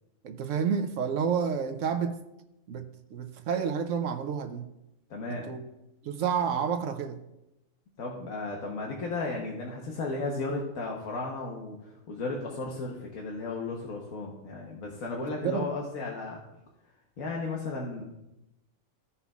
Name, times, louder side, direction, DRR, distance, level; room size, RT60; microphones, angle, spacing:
voice 1, 0.2-2.2 2.7-4.7 5.3-5.6 6.0-7.2 15.2-15.7, right 7 dB, 70° right, 1.0 m, -30 dB
voice 2, 5.1-5.4 8.0-16.4 17.2-18.0, left 3 dB, 90° left, 1.5 m, -34 dB
15.5 x 5.6 x 2.4 m
omnidirectional pair, 1.4 m